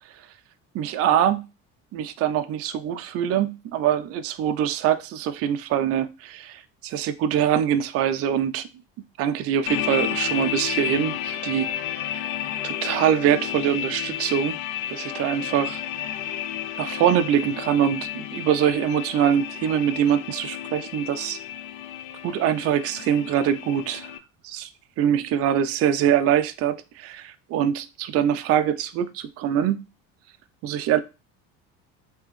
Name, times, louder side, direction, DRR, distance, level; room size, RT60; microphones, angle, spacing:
voice 1, 0.7-1.5 1.9-6.0 6.5-8.7 9.2-12.2 12.6-14.6 14.9-15.8 16.8-21.4 22.2-24.1 24.4-24.7 25.0-29.8 30.6-31.0, right 9 dB, 50° right, 0.4 m, -23 dB
sound 1, 9.7-24.2, left 11 dB, 85° left, 0.5 m, -32 dB
3.6 x 2.9 x 3.1 m
cardioid pair, 110°, 32 cm